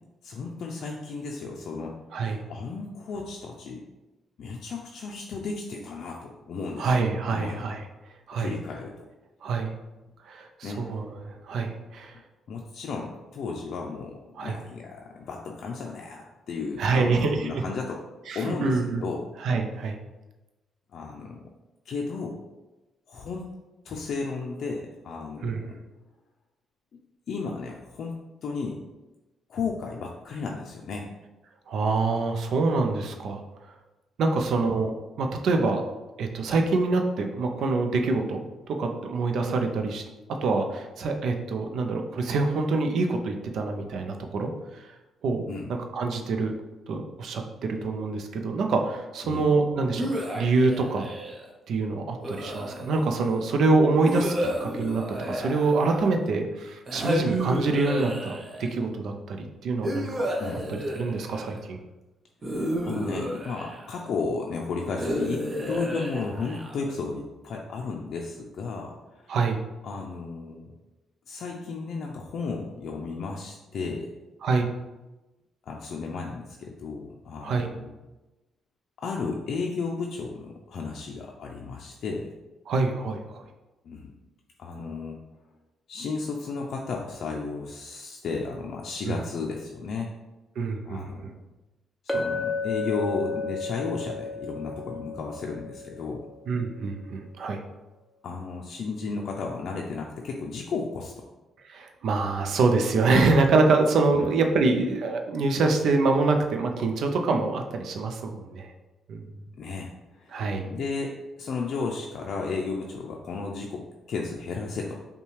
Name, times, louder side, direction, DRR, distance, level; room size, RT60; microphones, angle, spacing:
voice 1, 0.2-3.9 4.4-7.0 7.3-7.6 8.3-9.1 10.6-10.8 12.1-12.2 12.5-18.0 18.3-19.3 20.9-21.5 21.9-22.4 23.1-23.5 23.8-25.8 26.9-27.0 27.3-28.2 28.4-28.8 29.5-31.1 34.5-34.6 45.5-45.7 49.2-49.4 54.4-54.6 60.4-60.7 62.6-69.4 69.8-70.8 71.3-74.1 75.7-77.9 79.0-82.3 83.8-84.1 84.6-85.2 85.9-90.1 90.9-91.4 92.0-96.3 98.2-101.3 104.1-104.3 109.6-115.0, left 4 dB, 65° left, 0 dB, 0.4 m, -34 dB
voice 2, 6.8-7.8 8.3-8.5 9.4-9.7 10.2-12.2 14.4-14.6 16.8-17.6 18.3-19.0 19.4-20.0 25.4-25.6 31.7-33.4 34.2-34.9 35.2-35.8 36.2-38.4 38.7-40.0 40.4-44.9 45.2-45.4 45.7-46.5 46.9-51.0 51.7-60.3 60.7-61.8 69.3-69.6 74.4-74.7 77.4-77.7 82.7-83.4 89.0-89.2 90.6-91.3 96.5-97.6 101.6-108.7 109.1-109.2 110.3-110.7, right 3 dB, 70° right, 4 dB, 0.5 m, -25 dB
sound 1, 50.0-51.5 52.2-53.1 54.0-56.2 56.9-58.7 59.8-61.6 62.4-64.1 65.0-66.9, equal, 35° right, 0.8 m, -31 dB
Chink clink, 92.1-96.3, left 3 dB, ahead, 0.6 m, -32 dB
5.4 x 2.3 x 3.2 m, 1.1 s
cardioid pair, 90°, 0 cm